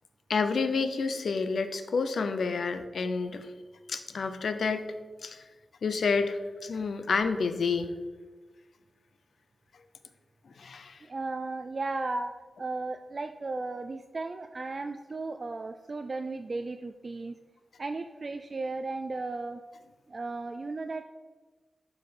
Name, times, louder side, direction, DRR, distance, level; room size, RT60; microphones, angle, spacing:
voice 1, 0.3-3.5 3.9-4.9 5.2-5.4 5.8-7.9 10.6-11.0 12.1-12.2, left 4 dB, 65° left, 9 dB, 0.7 m, -29 dB
voice 2, 11.1-12.3 12.6-17.4 17.8-19.6 20.1-21.0, right 3 dB, 35° right, 7 dB, 0.3 m, -35 dB
11.5 x 4.9 x 5.1 m, 1.3 s
wide cardioid pair, 175°, 0 cm